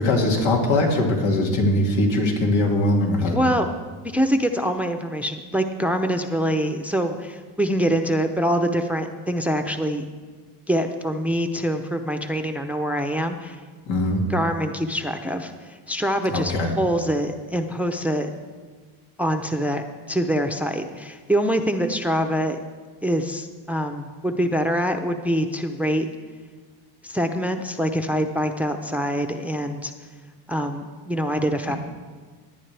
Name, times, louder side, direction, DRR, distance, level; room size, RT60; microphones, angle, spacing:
voice 1, 0.0-3.4 13.9-14.2 16.3-16.7, left 1 dB, 90° left, 0 dB, 2.3 m, -21 dB
voice 2, 3.3-3.7 4.1-10.0 10.7-13.6 14.3-18.3 19.2-22.6 23.0-26.1 27.0-29.9 30.5-31.8, equal, 5° right, 6 dB, 0.6 m, -24 dB
19.0 x 9.5 x 3.4 m, 1.5 s
cardioid pair, 95°, 46 cm